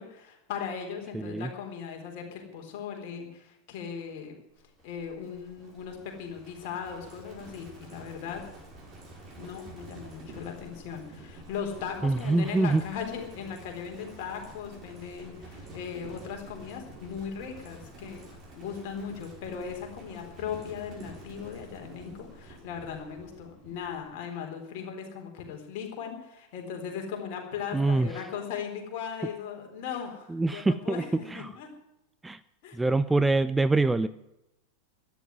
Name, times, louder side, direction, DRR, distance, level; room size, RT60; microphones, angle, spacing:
voice 1, 0.0-4.4 4.8-8.4 9.4-18.2 18.6-31.7 32.6-32.8, left 7 dB, 45° left, 3 dB, 4.0 m, -38 dB
voice 2, 1.1-1.5 12.0-12.8 27.7-28.1 30.3-31.5 32.2-32.4 32.7-34.1, right 2 dB, 10° right, 14 dB, 0.5 m, -25 dB
Livestock farm animals working animals, 4.6-24.2, right 1 dB, 30° right, 5.7 m, -49 dB
13.0 x 10.5 x 9.4 m, 0.89 s
figure-of-eight pair, 90°, 0 cm